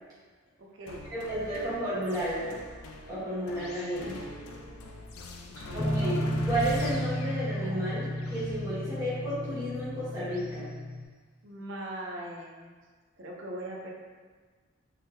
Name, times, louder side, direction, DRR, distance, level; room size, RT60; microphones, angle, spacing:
voice 1, 0.6-1.0 5.7-5.9 11.4-12.7 13.2-13.9, right 1 dB, 55° right, -2 dB, 0.6 m, -40 dB
sound 1, 0.9-10.6, left 2 dB, 80° left, 0.4 m, -43 dB
voice 2, 1.1-2.5 3.1-4.2 5.7-6.2 6.4-10.6, right 1 dB, 15° right, -12 dB, 1.3 m, -32 dB
Guitar, 5.8-11.0, equal, 10° left, 0.3 m, -32 dB
3.7 x 3.4 x 2.7 m, 1.5 s
head